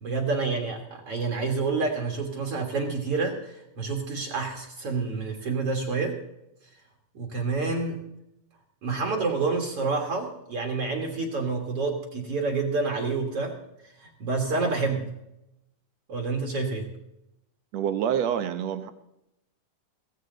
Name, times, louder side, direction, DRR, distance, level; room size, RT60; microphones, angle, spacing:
voice 1, 0.0-6.2 7.1-8.0 8.8-13.5 13.8-15.1 16.1-16.9, right 4 dB, 50° right, 1 dB, 2.4 m, -28 dB
voice 2, 17.7-18.9, right 9 dB, 70° right, 10 dB, 1.7 m, -27 dB
16.5 x 15.0 x 3.9 m, 0.85 s
omnidirectional pair, 3.8 m